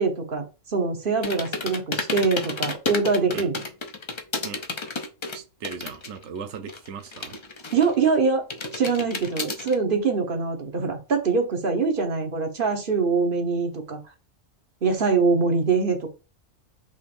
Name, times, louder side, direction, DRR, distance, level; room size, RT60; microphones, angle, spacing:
voice 1, 0.0-3.6 7.7-8.4 8.7-14.0 14.8-16.1, right 4 dB, 50° right, 1.1 m, -23 dB
sound 1, 1.2-6.2 6.5-8.1 8.5-9.7, left 3 dB, 45° left, 0.4 m, -31 dB
voice 2, 5.3-7.4, right 6 dB, 75° right, 1.0 m, -38 dB
5.0 x 3.6 x 2.5 m
omnidirectional pair, 1.2 m